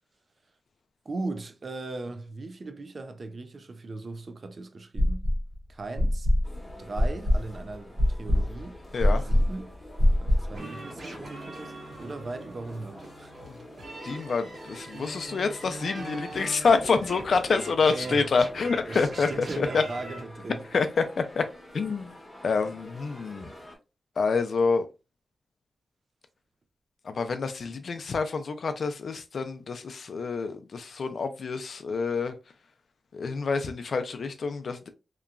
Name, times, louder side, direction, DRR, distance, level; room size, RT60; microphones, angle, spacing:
voice 1, 1.1-5.3 5.7-6.3 6.8-8.8 9.1-9.7 10.2-13.3 17.8-18.3 18.9-20.7, right 3 dB, 45° right, 0.4 m, -38 dB
sound 1, 5.0-5.5 6.0-10.6, left 1 dB, 60° right, 0.9 m, -23 dB
sound 2, 6.4-23.8, left 1 dB, 20° left, 1.1 m, -47 dB
voice 2, 8.9-9.3 13.5-13.6 14.0-19.8 20.7-21.5 21.7-22.1 22.4-23.5 24.2-24.9 27.0-32.3 33.1-34.9, left 4 dB, 70° left, 0.4 m, -27 dB
sound 3, 10.5-20.2, right 2 dB, 80° right, 1.3 m, -42 dB
2.9 x 2.2 x 2.4 m
wide cardioid pair, 120°, 0 cm